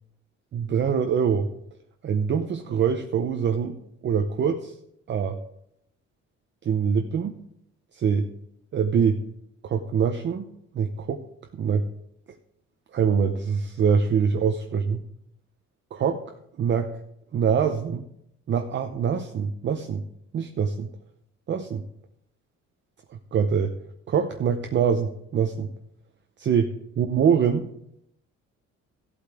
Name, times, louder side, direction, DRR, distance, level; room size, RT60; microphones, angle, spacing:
voice 1, 0.5-1.5 2.0-3.8 4.0-4.7 5.1-5.4 6.6-7.4 7.9-8.3 8.7-9.2 9.6-10.5 10.7-11.2 11.5-11.9 12.9-15.0 15.9-16.2 16.6-17.0 17.3-18.0 18.5-20.0 20.3-20.9 21.5-21.8 23.3-23.7 24.1-25.7 26.4-27.7, right 7 dB, 40° right, 5 dB, 0.7 m, -24 dB
15.0 x 8.4 x 3.5 m, 0.76 s
cardioid pair, 130°, 29 cm